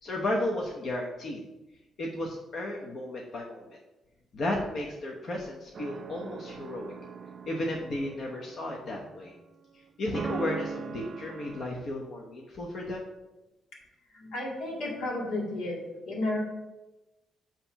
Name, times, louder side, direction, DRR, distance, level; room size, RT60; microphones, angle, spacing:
voice 1, 0.0-1.4 2.0-3.8 4.3-6.9 7.5-9.3 10.0-13.0, left 1 dB, 55° left, -1 dB, 0.9 m, -34 dB
sound 1, 5.7-9.3 10.1-11.7, right 5 dB, 45° right, 0.5 m, -40 dB
voice 2, 14.1-16.4, left 2 dB, 85° left, -2 dB, 2.0 m, -33 dB
7.7 x 3.0 x 5.7 m, 1.0 s
cardioid pair, 105°, 0 cm